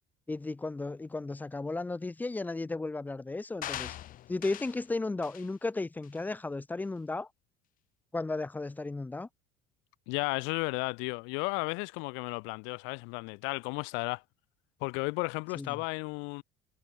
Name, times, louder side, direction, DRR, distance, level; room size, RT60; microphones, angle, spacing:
voice 1, 0.3-4.0 4.3-7.3 8.1-9.3 15.6-15.8, left 3 dB, 10° left, 1.0 m, -34 dB
sound 1, 3.6-4.8 5.2-5.5 6.0-6.2, left 13 dB, 45° left, 7.4 m, -41 dB
voice 2, 10.1-14.2 14.8-16.4, left 33 dB, 80° left, 4.7 m, -34 dB
cardioid pair, 155°, 19 cm